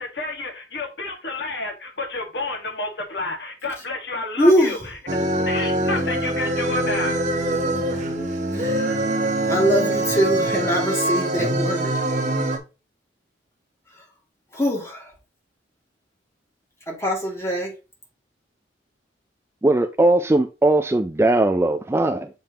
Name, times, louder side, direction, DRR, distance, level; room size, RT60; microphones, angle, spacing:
voice 1, 0.0-5.0 5.4-7.2, left 2 dB, 65° left, 1.6 m, -30 dB
voice 2, 4.4-4.8 8.6-8.8 9.4-11.9 14.5-15.0 16.9-17.7, equal, 15° left, 2.2 m, -22 dB
sound 1, 5.1-12.6, right 1 dB, 40° right, 1.0 m, -24 dB
voice 3, 19.6-22.3, right 2 dB, 15° right, 0.3 m, -19 dB
7.2 x 5.4 x 2.9 m
head